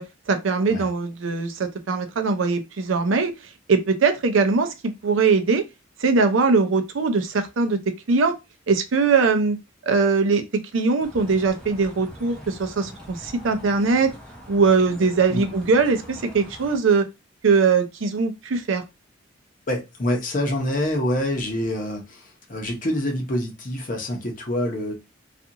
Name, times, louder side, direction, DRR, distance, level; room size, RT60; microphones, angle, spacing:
voice 1, 0.0-3.3 3.7-4.7 5.0-5.6 6.0-7.8 8.1-8.3 8.7-9.6 9.8-14.1 14.5-17.1 17.4-18.8, right 4 dB, 80° right, 0.5 m, -21 dB
sound 1, 11.0-16.8, equal, 5° left, 0.6 m, -43 dB
voice 2, 19.7-24.9, left 1 dB, 40° left, 0.8 m, -26 dB
2.5 x 2.4 x 2.7 m
head